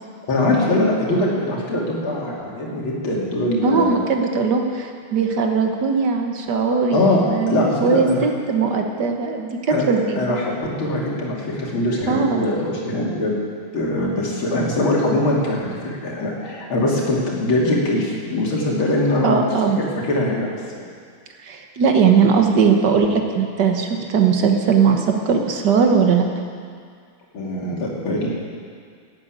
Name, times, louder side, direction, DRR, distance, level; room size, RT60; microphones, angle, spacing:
voice 1, 0.3-4.0 6.5-8.2 9.7-9.8 10.2-13.3 13.7-19.4 19.8-20.6 27.3-28.3, left 1 dB, 65° left, -3 dB, 3.2 m, -22 dB
voice 2, 3.6-10.2 12.1-12.5 19.2-19.8 21.4-26.2, right 5 dB, 55° right, 3 dB, 1.7 m, -19 dB
11.5 x 9.3 x 8.9 m, 2.1 s
omnidirectional pair, 2.4 m